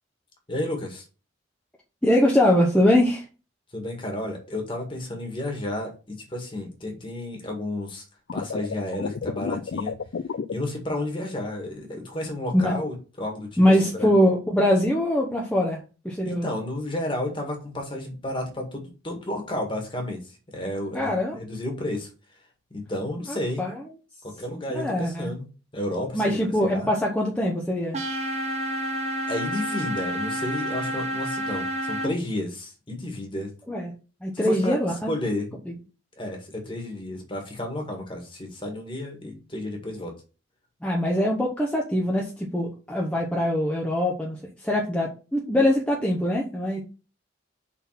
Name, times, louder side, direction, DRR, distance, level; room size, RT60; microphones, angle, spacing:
voice 1, 0.5-1.0 3.7-8.0 8.3-10.0 10.5-13.6 13.9-14.1 16.2-22.1 22.7-23.6 24.2-25.5 25.7-26.9 29.3-33.5 34.3-34.8 35.1-35.5 36.2-40.1, left 1 dB, 25° left, 1 dB, 1.8 m, -32 dB
voice 2, 2.0-3.2 12.5-12.8 13.6-15.8 16.0-16.5 20.9-21.4 23.3-23.8 24.7-25.3 26.1-28.0 33.7-33.9 34.2-35.1 40.8-46.8, left 1 dB, 5° left, -3 dB, 1.0 m, -23 dB
sound 1, 8.3-10.5, left 6 dB, 75° left, 0.4 m, -30 dB
sound 2, 27.9-32.1, right 1 dB, 35° right, 1.5 m, -29 dB
5.8 x 4.1 x 5.8 m, 0.34 s
head